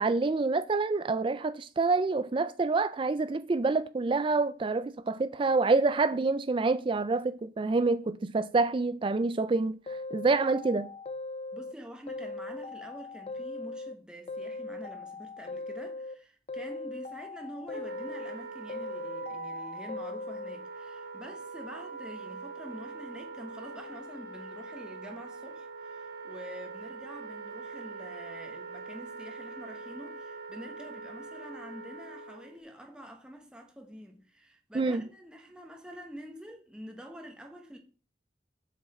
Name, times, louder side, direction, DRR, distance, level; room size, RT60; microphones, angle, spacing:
voice 1, 0.0-9.8 10.1-10.9 34.7-35.0, right 3 dB, 30° right, 0.3 m, -27 dB
sound 1, 9.9-11.7 12.1-14.0 14.3-16.2 16.5-18.4 18.7-20.6, left 3 dB, 35° left, 0.5 m, -39 dB
voice 2, 11.5-37.8, equal, 5° right, 1.1 m, -46 dB
Wind instrument woodwind instrument, 17.7-32.6, right 4 dB, 70° right, 1.6 m, -43 dB
7.5 x 7.3 x 4.2 m
head